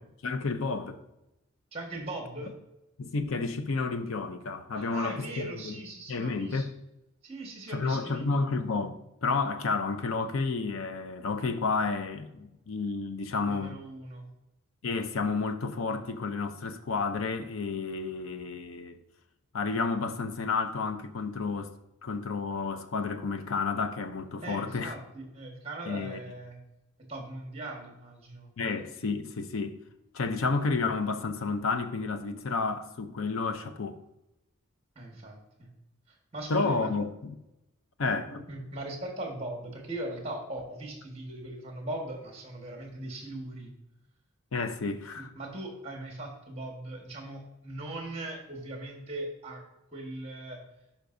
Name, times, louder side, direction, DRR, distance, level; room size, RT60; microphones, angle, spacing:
voice 1, 0.2-1.0 3.0-5.8 6.1-6.7 7.7-13.7 14.8-19.0 19.5-21.7 22.0-24.9 25.9-26.2 28.6-29.7 30.1-34.0 36.5-37.3 38.0-38.4 44.5-45.3, left 4 dB, 75° left, 0.6 m, -31 dB
voice 2, 1.7-2.5 4.7-6.7 7.2-8.5 13.4-14.3 24.4-26.6 27.1-28.5 34.9-35.7 36.1-36.9 38.5-43.7 45.1-49.6 49.9-50.6, right 1 dB, 30° right, 1.5 m, -40 dB
11.5 x 5.2 x 2.6 m
head